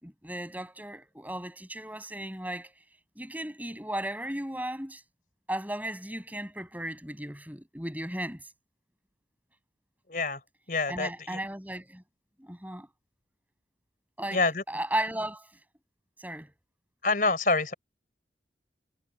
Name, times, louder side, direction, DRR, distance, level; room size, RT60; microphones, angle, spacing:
voice 1, 0.0-2.7 3.1-5.0 5.5-8.5 10.9-12.0 12.4-12.9 14.2-14.4 14.7-15.5 16.2-16.5, right 1 dB, 10° right, 6.8 m, -35 dB
voice 2, 10.1-10.4 10.7-11.4 14.3-14.6 17.0-17.7, left 3 dB, 50° left, 4.8 m, -27 dB
head